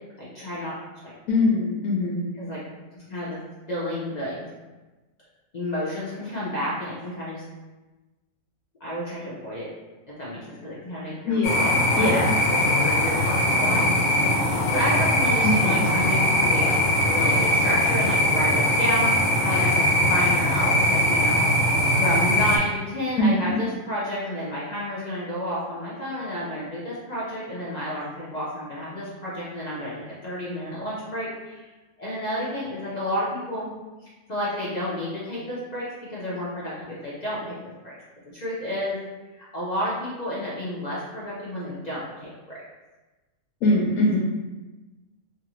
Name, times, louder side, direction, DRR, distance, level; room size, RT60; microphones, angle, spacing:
voice 1, 0.2-0.8 1.0-1.1 2.4-2.6 3.1-3.4 3.7-4.4 5.5-7.4 8.8-9.7 10.1-12.1 12.5-13.9 14.2-16.8 17.0-19.2 19.4-29.9 30.2-31.6 32.0-33.7 34.3-37.9 38.3-39.0 39.3-42.6, equal, 50° left, -8 dB, 0.5 m, -31 dB
voice 2, 1.3-2.2 11.3-12.3 15.4-15.9 23.2-23.7 43.6-44.2, left 1 dB, 90° left, -3 dB, 1.1 m, -22 dB
sound 1, 11.4-22.6, left 1 dB, 65° left, 0.9 m, -21 dB
2.7 x 2.5 x 2.9 m, 1.2 s
omnidirectional pair, 1.5 m